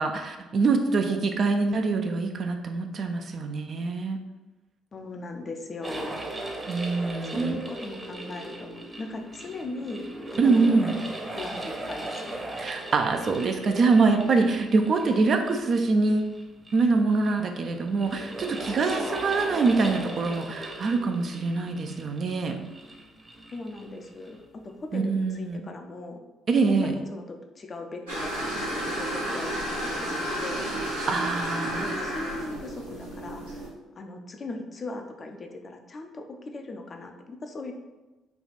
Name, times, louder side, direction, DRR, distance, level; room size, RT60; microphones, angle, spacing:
voice 1, 0.0-4.2 6.7-7.6 10.4-11.0 12.6-16.3 16.7-22.6 24.9-25.7 26.5-26.9 31.1-31.9, right 4 dB, 50° right, 5 dB, 0.4 m, -24 dB
voice 2, 4.9-6.2 7.1-10.1 10.4-10.9 11.3-12.5 23.5-24.4 24.6-26.2 26.8-30.7 31.8-33.7 34.0-37.7, left 2 dB, 40° left, 4 dB, 0.5 m, -39 dB
sound 1, 5.8-24.4, right 1 dB, 20° right, 0.8 m, -38 dB
sound 2, 28.1-33.7, right 1 dB, 90° right, 0.8 m, -31 dB
3.4 x 2.4 x 4.0 m, 1.1 s
hypercardioid pair, 50°, 0 cm